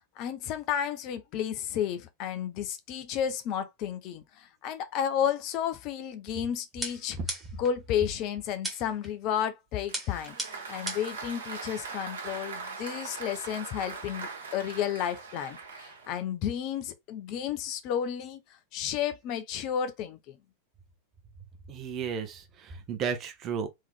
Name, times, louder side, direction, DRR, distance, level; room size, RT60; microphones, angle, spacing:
voice 1, 0.2-10.4 10.7-18.4 18.7-20.4, left 9 dB, 40° left, 0.6 m, -32 dB
sound 1, 6.8-7.7 8.6-9.1 9.9-11.2, right 1 dB, 5° right, 1.7 m, -37 dB
Applause, 9.9-16.2, right 4 dB, 65° right, 1.3 m, -41 dB
voice 2, 21.7-23.7, right 6 dB, 30° right, 1.0 m, -33 dB
3.7 x 3.1 x 3.5 m
figure-of-eight pair, 90°, 0 cm